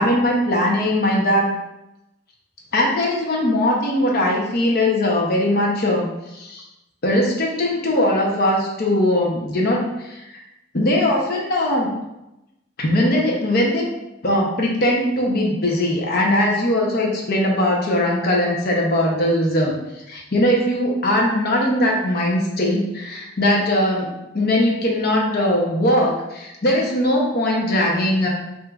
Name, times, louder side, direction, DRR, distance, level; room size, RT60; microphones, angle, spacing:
voice 1, 0.0-1.5 2.7-6.1 6.3-6.6 7.0-10.4 10.7-11.9 12.8-13.8 14.2-19.7 20.1-28.3, left 1 dB, 50° left, -1 dB, 0.8 m, -20 dB
5.8 x 2.7 x 2.4 m, 0.91 s
head